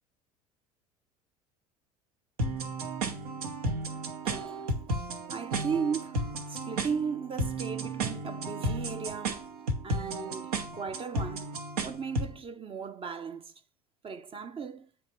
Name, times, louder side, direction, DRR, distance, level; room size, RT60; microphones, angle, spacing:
sound 1, 2.4-12.4, right 1 dB, 75° right, 1.2 m, -33 dB
voice 1, 4.2-4.9 5.3-6.2 6.5-9.5 9.8-11.5 11.8-13.5 14.0-14.9, right 6 dB, 30° right, 0.7 m, -36 dB
9.0 x 3.2 x 6.6 m
hypercardioid pair, 70°, 19 cm